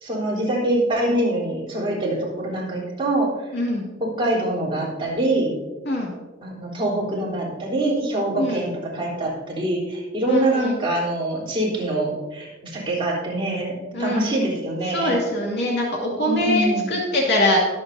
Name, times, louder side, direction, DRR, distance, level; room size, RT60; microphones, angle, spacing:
voice 1, 0.0-3.3 4.0-5.5 6.4-15.2 16.3-16.9, right 1 dB, 25° right, -5 dB, 3.7 m, -24 dB
voice 2, 3.5-3.9 5.8-6.1 8.4-8.6 10.3-10.8 13.9-14.2 14.9-17.6, left 1 dB, 55° left, -2 dB, 2.2 m, -23 dB
21.5 x 7.9 x 2.7 m, 1.2 s
head